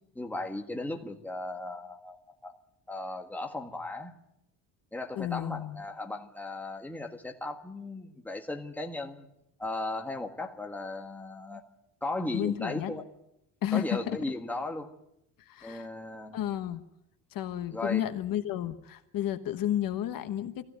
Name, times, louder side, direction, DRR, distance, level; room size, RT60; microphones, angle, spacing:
voice 1, 0.2-2.5 2.9-4.1 4.9-9.3 9.6-11.6 12.0-13.0 13.7-14.9 15.6-16.3 17.7-18.0, left 2 dB, 5° left, 3 dB, 1.6 m, -36 dB
voice 2, 5.2-5.8 12.3-12.9 13.6-14.2 15.5-15.9 16.3-16.8 17.3-20.6, left 11 dB, 55° left, 10 dB, 1.3 m, -32 dB
23.0 x 16.0 x 9.1 m, 0.83 s
cardioid pair, 155°, 42 cm